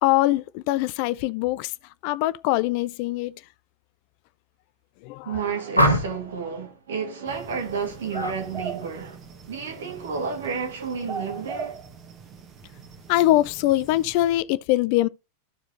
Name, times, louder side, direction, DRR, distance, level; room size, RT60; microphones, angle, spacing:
voice 1, 0.0-1.7 2.0-3.3 5.0-5.3 13.1-15.1, left 16 dB, 45° left, 0.4 m, -22 dB
voice 2, 5.2-9.2 9.5-11.8, right 5 dB, 60° right, 2.0 m, -31 dB
sound 1, 5.7-6.4 8.1-8.4 8.8-9.2, equal, 85° left, 1.2 m, -23 dB
sound 2, 7.3-14.4, right 5 dB, 30° right, 1.7 m, -40 dB
13.5 x 4.9 x 2.9 m
figure-of-eight pair, 90°, 0 cm